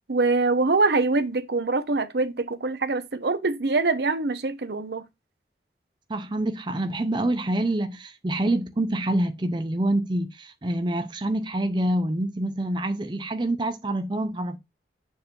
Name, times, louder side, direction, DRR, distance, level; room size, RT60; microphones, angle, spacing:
voice 1, 0.1-5.0, right 3 dB, 70° right, 0.7 m, -24 dB
voice 2, 6.1-14.6, right 1 dB, 25° right, 0.5 m, -26 dB
7.0 x 2.6 x 5.2 m
head